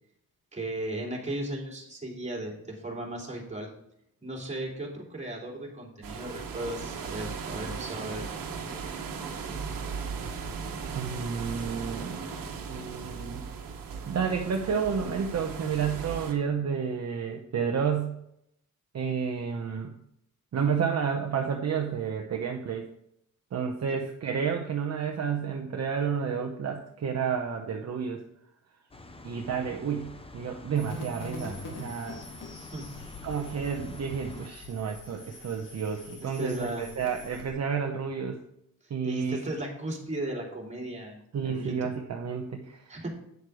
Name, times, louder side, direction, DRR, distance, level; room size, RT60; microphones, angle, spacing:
voice 1, 0.5-3.7 4.2-8.2 32.7-32.9 36.2-36.8 38.8-41.8 42.9-43.1, right 1 dB, 20° right, -2 dB, 3.0 m, -36 dB
sound 1, 6.0-16.3, right 5 dB, 65° right, 1.5 m, -37 dB
voice 2, 10.9-12.2 12.7-13.4 14.0-18.1 18.9-19.9 20.5-22.9 23.5-28.2 29.2-30.1 30.3-32.2 33.2-38.4 38.9-39.4 41.3-43.0, right 6 dB, 45° right, 2 dB, 1.0 m, -30 dB
sound 2, 28.9-34.5, left 2 dB, 15° left, 0.8 m, -47 dB
sound 3, 30.8-37.5, left 3 dB, 60° left, 2.4 m, -44 dB
9.5 x 6.6 x 4.8 m, 0.75 s
cardioid pair, 120°, 35 cm